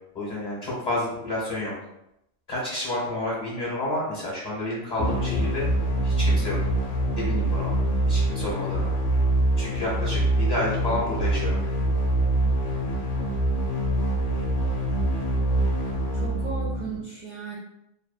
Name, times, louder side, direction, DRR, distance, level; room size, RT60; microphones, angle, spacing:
voice 1, 0.1-1.7 2.5-5.6 6.0-6.6 7.2-7.7 8.1-8.9 9.6-11.6, left 1 dB, 40° left, -8 dB, 0.9 m, -30 dB
sound 1, 5.0-17.0, right 1 dB, 75° left, 0.9 m, -24 dB
voice 2, 16.1-17.6, right 4 dB, 75° right, -5 dB, 0.4 m, -36 dB
2.8 x 2.0 x 2.4 m, 0.83 s
omnidirectional pair, 1.3 m